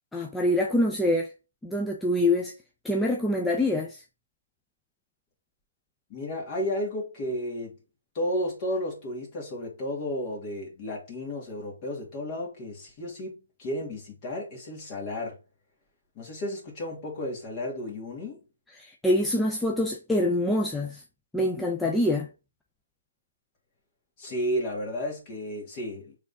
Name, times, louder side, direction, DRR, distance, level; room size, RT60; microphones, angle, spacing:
voice 1, 0.1-1.3 1.6-2.5 2.8-4.0 18.8-21.0 21.3-22.3, left 1 dB, 5° left, 0.4 m, -25 dB
voice 2, 6.1-7.8 8.1-15.4 16.2-18.4 24.2-26.2, left 1 dB, 30° left, 2.0 m, -33 dB
4.9 x 3.3 x 2.7 m
figure-of-eight pair, 145°, 0 cm